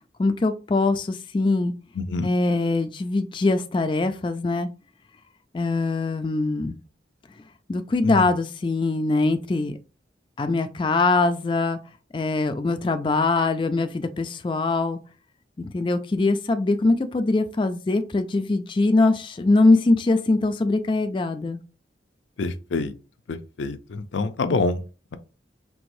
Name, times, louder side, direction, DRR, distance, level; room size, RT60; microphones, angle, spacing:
voice 1, 0.2-1.7 2.2-4.7 5.5-6.8 7.7-9.8 10.4-11.8 12.1-15.0 15.6-21.6, left 3 dB, 25° left, 0.3 m, -22 dB
voice 2, 2.0-2.3 8.0-8.2 22.4-22.9 23.3-24.8, left 3 dB, 85° left, 0.5 m, -26 dB
4.7 x 3.4 x 2.6 m
head